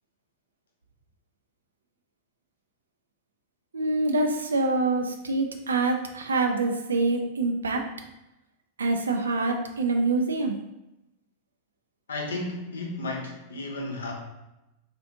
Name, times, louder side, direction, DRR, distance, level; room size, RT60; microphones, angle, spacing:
voice 1, 3.7-7.8 8.8-10.6, right 3 dB, 70° right, 4 dB, 0.4 m, -25 dB
voice 2, 12.1-14.1, left 2 dB, 70° left, 1 dB, 0.6 m, -33 dB
3.6 x 2.4 x 2.7 m, 0.93 s
figure-of-eight pair, 90°, 0 cm